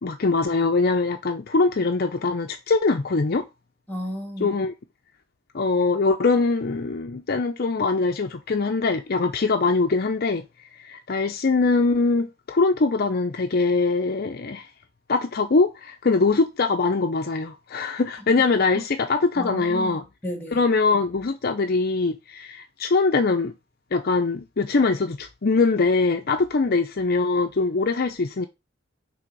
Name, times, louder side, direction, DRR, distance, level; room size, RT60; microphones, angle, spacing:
voice 1, 0.0-3.5 4.4-4.7 5.5-10.4 10.8-14.7 15.1-20.0 20.5-23.5 23.9-28.5, left 3 dB, 50° left, 0.6 m, -22 dB
voice 2, 3.9-4.6 18.8-18.9 19.4-20.6, equal, 10° left, 2.0 m, -33 dB
5.8 x 3.5 x 5.2 m
head